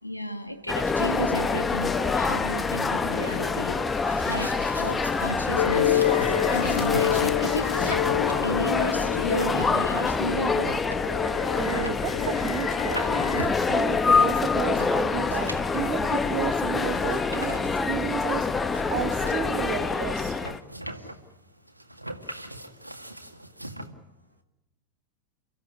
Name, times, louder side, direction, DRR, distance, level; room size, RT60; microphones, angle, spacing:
voice 1, 0.0-3.8 4.2-6.0 6.5-7.8 8.4-10.7 21.0-21.1, equal, 85° left, 6 dB, 2.4 m, -32 dB
sound 1, 0.7-20.6, left 4 dB, 15° left, 1.1 m, -26 dB
sound 2, 4.1-23.9, right 1 dB, 90° right, 1.9 m, -40 dB
sound 3, 5.6-13.5, left 12 dB, 55° left, 0.9 m, -29 dB
voice 2, 11.6-20.5, right 13 dB, 40° right, 9 dB, 1.2 m, -33 dB
30.0 x 15.0 x 9.6 m, 0.96 s
figure-of-eight pair, 90°, 0 cm